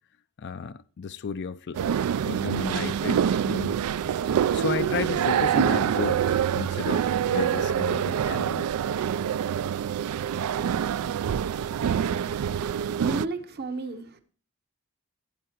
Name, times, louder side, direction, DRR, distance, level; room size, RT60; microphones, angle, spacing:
voice 1, 0.4-1.8 2.2-8.7, left 5 dB, 50° left, 0.4 m, -33 dB
sound 1, 1.7-13.3, right 8 dB, 80° right, 0.3 m, -26 dB
voice 2, 12.9-14.2, right 3 dB, 45° right, 0.9 m, -32 dB
12.5 x 8.7 x 2.9 m
head